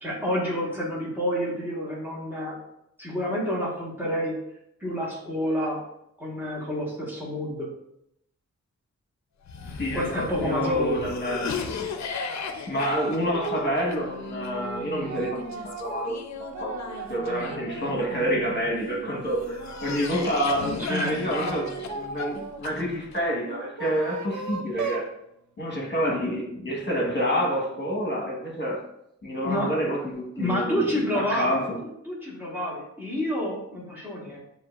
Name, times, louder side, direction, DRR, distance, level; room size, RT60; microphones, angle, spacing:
voice 1, 0.0-2.6 3.0-4.3 4.8-5.8 6.2-7.7 9.9-11.1 20.8-21.5 29.4-29.7 30.4-34.4, equal, 5° right, -5 dB, 1.3 m, -29 dB
Cough, 9.4-18.7 19.2-23.2, left 5 dB, 70° left, 0.5 m, -36 dB
voice 2, 9.8-11.6 12.7-15.4 15.8-16.2 16.6-25.1 25.6-28.8 29.2-31.7, equal, 40° left, -2 dB, 1.3 m, -28 dB
sound 1, 13.3-13.8 14.2-18.3 18.7-20.3 21.0-22.6 23.4-25.1, right 5 dB, 80° right, 0.5 m, -37 dB
7.1 x 2.7 x 2.4 m, 0.78 s
wide cardioid pair, 155°, 29 cm